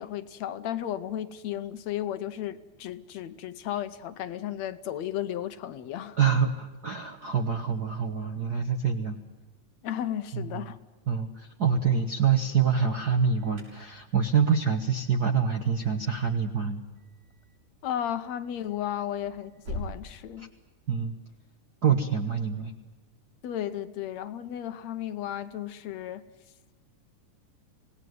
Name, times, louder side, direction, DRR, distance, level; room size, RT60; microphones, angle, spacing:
voice 1, 0.0-6.2 9.8-10.8 17.8-20.5 23.4-26.2, left 11 dB, 70° left, 2.0 m, -34 dB
voice 2, 6.2-9.2 10.3-10.6 11.1-16.8 20.4-20.5 20.9-21.1 21.8-22.7, right 6 dB, 55° right, 1.1 m, -26 dB
Alarm, 13.1-20.0, equal, 85° right, 8.2 m, -46 dB
26.0 x 18.5 x 9.4 m
omnidirectional pair, 3.5 m